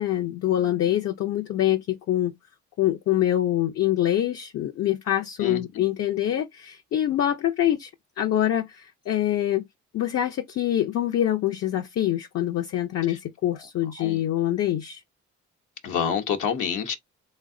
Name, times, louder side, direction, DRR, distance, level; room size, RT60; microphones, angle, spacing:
voice 1, 0.0-2.3 2.8-7.9 8.2-9.6 9.9-15.0, left 12 dB, 55° left, 0.5 m, -25 dB
voice 2, 5.4-5.8 13.1-13.2 14.0-14.2 15.8-16.9, left 7 dB, 80° left, 0.9 m, -28 dB
3.4 x 2.1 x 3.7 m
cardioid pair, 90°, 30 cm